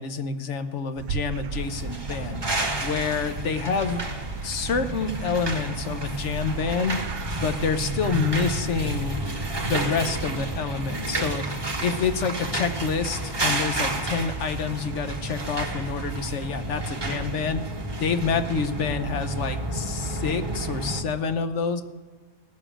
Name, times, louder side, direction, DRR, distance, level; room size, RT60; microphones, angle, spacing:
voice 1, 0.0-4.0 4.4-7.0 7.4-9.3 9.6-17.6 18.0-21.8, left 5 dB, 55° left, 9 dB, 1.2 m, -28 dB
sound 1, 1.0-10.7, right 6 dB, 75° right, 1.0 m, -38 dB
sound 2, 1.5-21.0, right 2 dB, 20° right, 1.2 m, -30 dB
17.0 x 7.2 x 8.8 m, 1.3 s
omnidirectional pair, 1.5 m